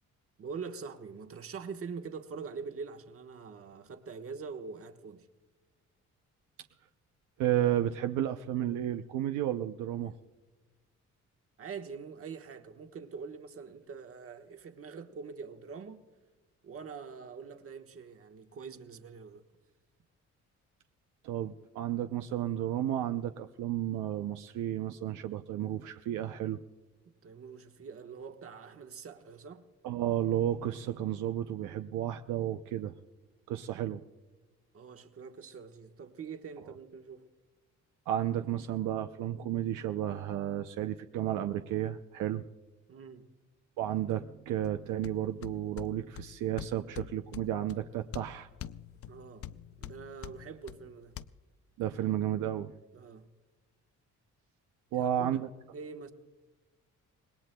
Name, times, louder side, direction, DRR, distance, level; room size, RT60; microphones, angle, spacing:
voice 1, 0.4-5.3 11.6-16.0 16.6-19.4 27.2-29.6 34.7-37.3 42.9-43.3 49.1-49.5 49.8-51.2 52.9-53.3 54.9-55.4 55.7-56.1, right 5 dB, 50° right, 1.3 m, -44 dB
voice 2, 7.4-10.1 21.2-26.6 29.8-32.9 33.5-34.0 38.1-42.4 43.8-48.5 51.8-52.7 54.9-55.5, right 12 dB, 85° right, 0.6 m, -32 dB
sound 1, 44.6-51.2, left 11 dB, 50° left, 0.5 m, -46 dB
26.0 x 19.5 x 2.2 m
cardioid pair, 90°, 30 cm